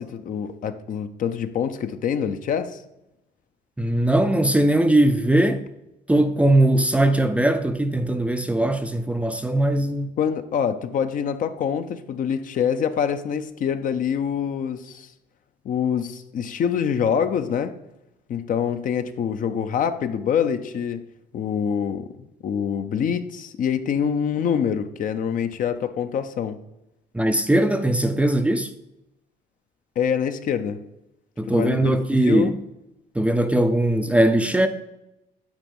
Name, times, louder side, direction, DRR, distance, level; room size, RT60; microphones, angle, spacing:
voice 1, 0.0-2.8 10.2-15.1 15.6-17.7 18.3-21.0 21.3-26.6 30.0-30.8 31.5-32.6, left 7 dB, 50° left, 0.7 m, -25 dB
voice 2, 3.8-5.6 6.1-10.1 27.1-28.7 31.4-32.5 33.2-34.7, right 1 dB, 5° right, 0.5 m, -20 dB
9.0 x 4.2 x 5.4 m
cardioid pair, 110°, 17 cm